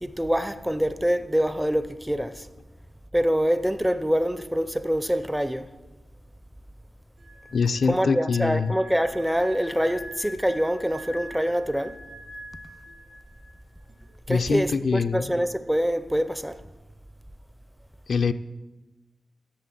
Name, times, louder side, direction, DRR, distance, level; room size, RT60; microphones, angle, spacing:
voice 1, 0.0-2.5 3.1-5.7 7.8-12.0 14.3-16.6, equal, 5° right, 0.5 m, -25 dB
sound 1, 7.2-13.6 13.8-14.1, equal, 75° right, 2.3 m, -44 dB
voice 2, 7.5-8.7 14.3-15.3 18.1-18.3, left 5 dB, 65° left, 0.5 m, -24 dB
11.5 x 7.3 x 7.6 m
wide cardioid pair, 125°, 0 cm